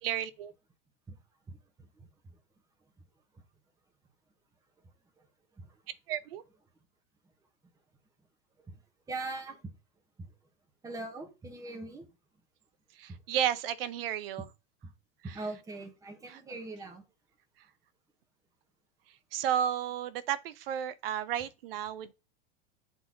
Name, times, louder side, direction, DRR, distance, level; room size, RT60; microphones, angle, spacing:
voice 1, 0.0-0.5 6.1-6.4 13.0-14.4 16.3-16.4 19.3-22.1, right 10 dB, 75° right, 0.8 m, -32 dB
voice 2, 9.1-9.7 10.8-12.1 15.2-17.0, right 2 dB, 10° right, 1.3 m, -40 dB
7.9 x 4.1 x 3.9 m
supercardioid pair, 150°, 29 cm